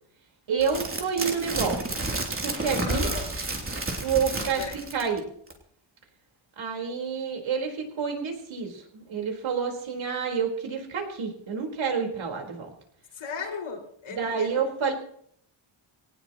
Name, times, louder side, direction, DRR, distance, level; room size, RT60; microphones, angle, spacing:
voice 1, 0.5-1.8 2.4-3.1 4.0-4.6 4.9-5.2 6.6-12.7 14.1-14.9, right 6 dB, 70° right, 2 dB, 4.7 m, -28 dB
sound 1, 0.6-5.2 5.5-5.6, right 2 dB, 25° right, 3.3 m, -31 dB
voice 2, 2.8-3.3 4.5-4.8 13.1-14.6, left 5 dB, 70° left, -1 dB, 5.8 m, -36 dB
21.5 x 19.0 x 3.1 m, 0.65 s
wide cardioid pair, 160°, 48 cm